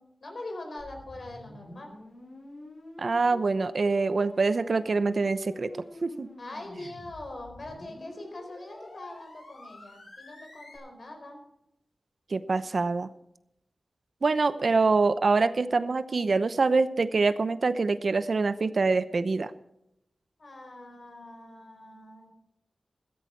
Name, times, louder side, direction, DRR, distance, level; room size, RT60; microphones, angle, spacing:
voice 1, 0.0-1.9 6.4-11.4 20.4-22.3, left 2 dB, 60° left, 4 dB, 4.7 m, -43 dB
sound 1, 0.8-10.8, left 2 dB, 85° left, 5.9 m, -47 dB
voice 2, 3.0-5.7 6.0-6.3 12.3-13.1 14.2-19.5, right 4 dB, 60° right, 13 dB, 0.8 m, -25 dB
15.0 x 13.5 x 4.6 m, 0.82 s
wide cardioid pair, 70°, 0 cm